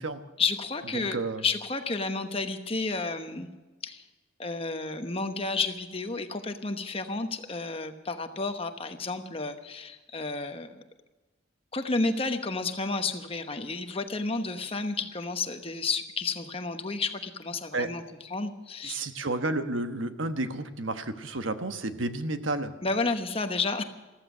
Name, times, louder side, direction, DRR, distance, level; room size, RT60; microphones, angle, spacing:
voice 1, 0.4-3.5 3.8-4.0 4.4-10.8 11.7-19.0 22.8-23.8, left 3 dB, 30° left, 7 dB, 1.0 m, -31 dB
voice 2, 0.9-1.4 17.7-17.9 18.8-22.7, right 2 dB, 85° right, 8 dB, 1.2 m, -31 dB
14.5 x 14.5 x 6.1 m, 1.2 s
head